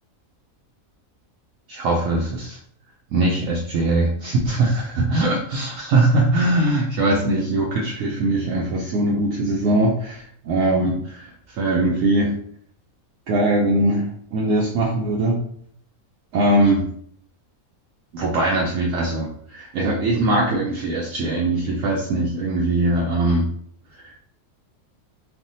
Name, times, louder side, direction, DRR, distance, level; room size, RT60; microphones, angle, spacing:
voice 1, 1.7-2.6 3.1-12.3 13.3-15.4 16.3-16.9 18.1-23.5 24.0-24.1, right 2 dB, 70° right, -2 dB, 0.9 m, -21 dB
3.4 x 2.4 x 2.6 m, 0.63 s
omnidirectional pair, 1.5 m